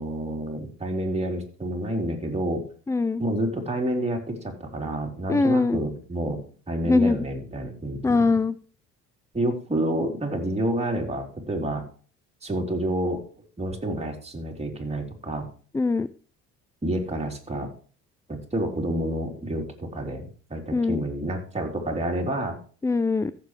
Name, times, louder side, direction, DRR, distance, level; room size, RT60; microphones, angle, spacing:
voice 1, 0.0-2.6 3.2-6.4 6.7-8.3 9.3-11.8 12.4-13.2 13.6-15.5 16.8-17.7 18.3-22.6, right 1 dB, 15° right, 1 dB, 3.6 m, -29 dB
voice 2, 2.9-3.2 5.3-5.8 6.8-7.2 8.0-8.6 15.7-16.1 20.7-21.0 22.8-23.3, left 3 dB, 10° left, 16 dB, 0.4 m, -22 dB
15.0 x 7.6 x 3.2 m, 0.40 s
supercardioid pair, 80°, 36 cm